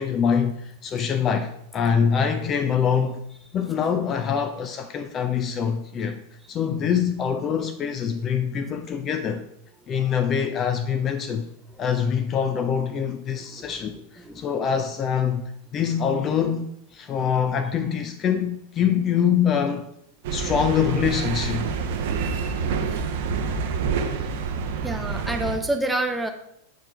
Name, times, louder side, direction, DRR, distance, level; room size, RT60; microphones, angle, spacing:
voice 1, 0.0-3.2 3.5-6.2 6.5-9.5 9.9-11.5 11.8-19.9 20.3-21.7, left 7 dB, 30° left, 0.5 m, -24 dB
sound 1, 20.2-25.6, right 5 dB, 50° right, 0.7 m, -27 dB
voice 2, 24.8-26.3, right 1 dB, 5° right, 0.8 m, -27 dB
8.4 x 4.3 x 4.5 m
figure-of-eight pair, 90°, 0 cm